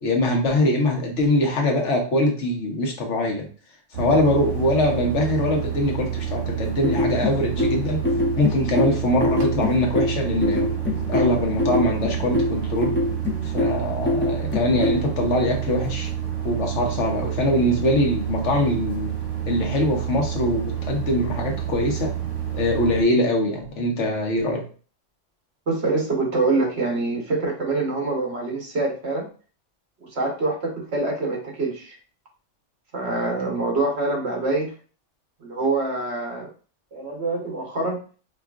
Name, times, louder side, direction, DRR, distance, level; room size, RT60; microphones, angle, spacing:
voice 1, 0.0-3.5 4.0-8.1 8.4-10.7 11.1-13.0 13.4-16.1 16.4-19.1 19.5-22.1 22.5-24.6, left 1 dB, 70° left, 2 dB, 1.2 m, -23 dB
sound 1, 3.9-23.0, right 10 dB, 85° right, 1.4 m, -29 dB
sound 2, 6.8-15.1, left 2 dB, 20° left, 0.3 m, -24 dB
voice 2, 25.7-29.3 30.0-31.9 32.9-34.7 35.4-36.5 36.9-38.0, right 3 dB, 60° right, 0 dB, 1.3 m, -25 dB
5.0 x 2.4 x 2.4 m, 0.38 s
omnidirectional pair, 1.3 m